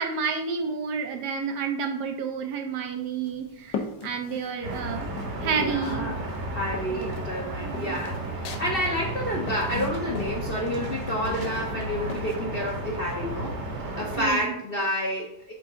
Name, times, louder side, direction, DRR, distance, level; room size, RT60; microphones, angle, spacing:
voice 1, 0.0-5.1 5.4-6.1 6.9-7.2 7.5-8.0 14.2-14.6, right 5 dB, 70° right, 5 dB, 1.2 m, -30 dB
sound 1, 3.0-4.8 5.2-6.0 6.3-12.4, left 5 dB, 75° left, 1.3 m, -39 dB
sound 2, 4.6-14.3, right 2 dB, 45° right, 1.1 m, -33 dB
voice 2, 5.4-6.2 6.5-13.5 14.0-15.5, left 1 dB, 45° left, -2 dB, 0.8 m, -29 dB
6.2 x 3.5 x 4.3 m, 0.71 s
omnidirectional pair, 2.0 m